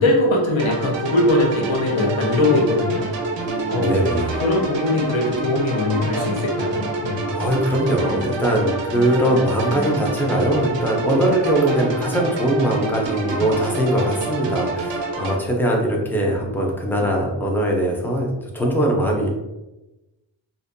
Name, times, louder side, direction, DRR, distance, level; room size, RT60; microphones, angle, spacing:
voice 1, 0.0-3.1 3.7-4.0 4.4-7.2, left 2 dB, 80° left, -1 dB, 0.8 m, -20 dB
sound 1, 0.6-15.4, right 2 dB, 65° right, 0.5 m, -27 dB
voice 2, 3.4-4.4 7.3-19.3, right 1 dB, 5° left, -1 dB, 0.4 m, -21 dB
2.5 x 2.1 x 2.5 m, 1.0 s
wide cardioid pair, 120°, 47 cm